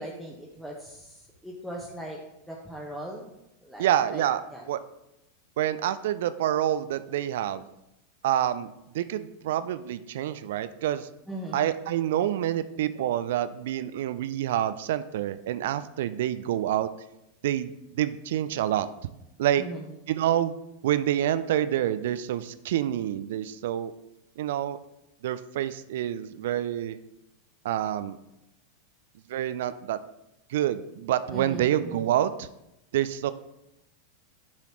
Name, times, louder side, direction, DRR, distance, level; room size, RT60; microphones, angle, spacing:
voice 1, 0.0-2.2 2.5-3.3 3.6-4.6 11.3-11.7 19.6-19.9 31.3-32.1, right 1 dB, ahead, -3 dB, 1.1 m, -39 dB
voice 2, 3.8-4.4 4.7-4.8 5.6-7.7 8.2-8.7 8.9-11.1 11.5-16.9 17.4-18.9 19.4-19.6 20.1-20.5 20.8-23.9 24.4-24.8 25.2-27.0 27.6-28.2 29.3-30.0 30.5-32.5 32.9-33.3, right 11 dB, 60° right, 13 dB, 0.4 m, -27 dB
10.5 x 5.7 x 3.0 m, 0.88 s
figure-of-eight pair, 90°, 0 cm